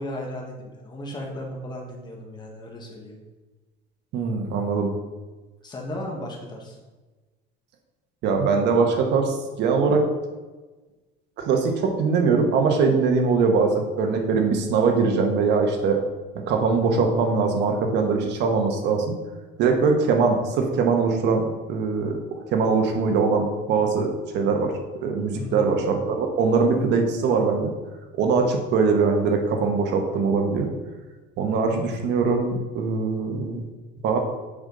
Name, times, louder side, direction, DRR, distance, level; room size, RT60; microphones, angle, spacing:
voice 1, 0.0-3.2 5.6-6.8 25.3-25.7, left 1 dB, 20° left, -1 dB, 1.4 m, -35 dB
voice 2, 4.1-4.9 8.2-10.0 11.4-16.0 16.5-19.1 19.6-24.7 25.0-27.7 28.2-30.7 31.4-33.6 34.0-34.2, right 4 dB, 55° right, 4 dB, 1.1 m, -22 dB
7.1 x 5.1 x 3.9 m, 1.2 s
cardioid pair, 145°, 21 cm